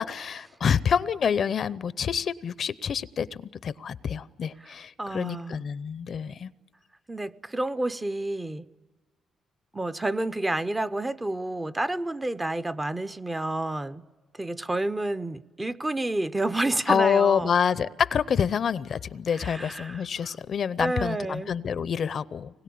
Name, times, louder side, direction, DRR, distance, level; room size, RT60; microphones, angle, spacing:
voice 1, 0.0-6.5 16.9-22.6, left 7 dB, 55° left, 0.7 m, -27 dB
voice 2, 4.6-5.7 7.1-8.7 9.7-14.1 14.3-17.6 19.3-20.4 20.8-21.5, right 2 dB, 15° right, 0.7 m, -30 dB
25.0 x 20.5 x 8.6 m
cardioid pair, 90°, 0 cm